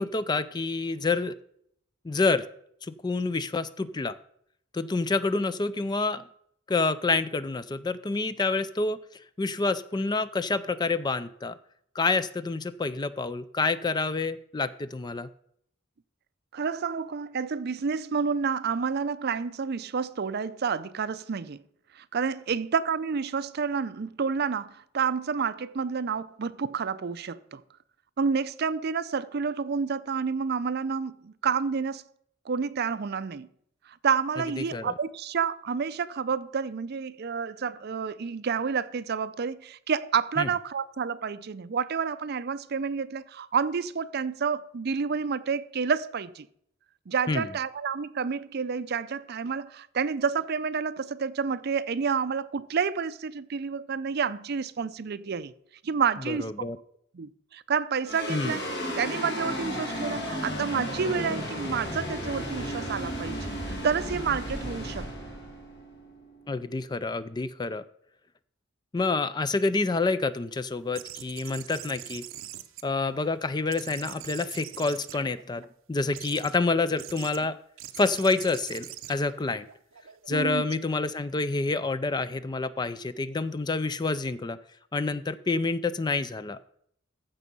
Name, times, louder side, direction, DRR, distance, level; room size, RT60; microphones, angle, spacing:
voice 1, 0.0-1.4 2.0-2.5 2.8-4.1 4.7-6.2 6.7-9.0 9.4-11.6 12.0-15.3 34.6-34.9 40.4-40.5 47.3-47.5 56.3-56.8 58.3-58.5 66.5-67.8 68.9-72.2 72.8-75.6 75.9-77.6 78.0-79.7 80.3-84.6 84.9-86.6, left 3 dB, 20° left, 0.4 m, -28 dB
voice 2, 16.5-21.6 21.9-27.6 28.2-32.0 32.5-33.5 33.9-46.5 47.1-55.5 55.8-56.5 57.1-58.7 59.0-65.1 80.3-80.6, right 6 dB, 55° right, 0.5 m, -29 dB
sound 1, 58.1-66.6, equal, 55° left, 2.2 m, -34 dB
sound 2, 70.9-73.4 73.7-75.7 76.1-76.6 77.0-77.4 77.8-80.3, right 12 dB, 90° right, 0.7 m, -43 dB
14.5 x 5.4 x 5.4 m
head